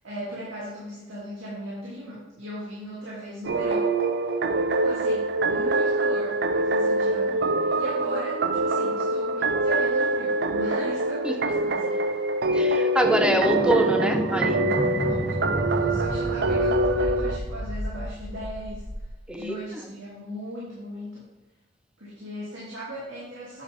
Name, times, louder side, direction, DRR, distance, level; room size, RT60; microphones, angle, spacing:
voice 1, 0.0-3.9 4.8-12.0 15.1-18.8 19.3-21.3 22.0-23.6, equal, 90° right, -8 dB, 2.9 m, -38 dB
sound 1, 3.4-17.4, right 2 dB, 55° right, 0.5 m, -24 dB
voice 2, 12.5-14.6 19.3-19.8, right 1 dB, 5° right, 5 dB, 0.7 m, -25 dB
sound 2, 13.0-19.1, equal, 30° left, 3.1 m, -30 dB
9.6 x 7.4 x 3.6 m, 1.1 s
head